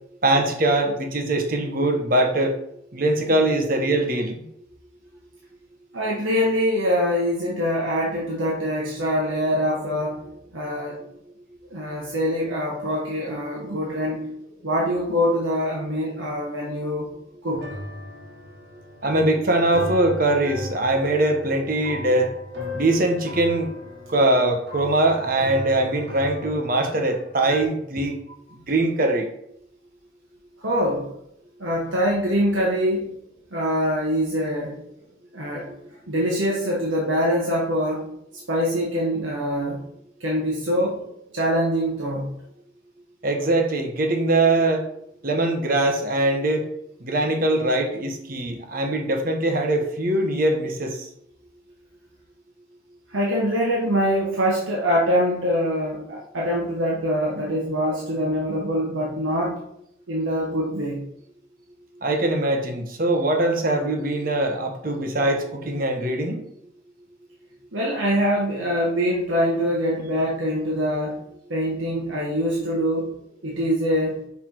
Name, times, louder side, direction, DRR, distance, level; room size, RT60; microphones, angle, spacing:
voice 1, 0.2-2.6 2.9-4.4 19.0-22.3 22.7-23.7 24.1-28.2 28.5-29.3 43.2-44.9 45.2-46.6 47.0-51.1 62.0-66.4, right 2 dB, 45° right, 3 dB, 1.0 m, -22 dB
voice 2, 5.9-10.2 10.5-11.0 11.7-14.3 14.6-17.1 17.4-17.6 30.6-31.1 31.6-33.1 33.5-34.8 35.3-35.7 36.1-38.0 38.5-39.8 40.2-41.0 41.3-42.3 53.1-59.6 60.1-61.0 67.7-71.2 71.5-73.1 73.4-74.2, equal, 85° right, -4 dB, 1.3 m, -24 dB
sound 1, 17.5-27.6, left 1 dB, 65° right, 1.5 m, -37 dB
6.0 x 3.4 x 4.5 m, 0.73 s
head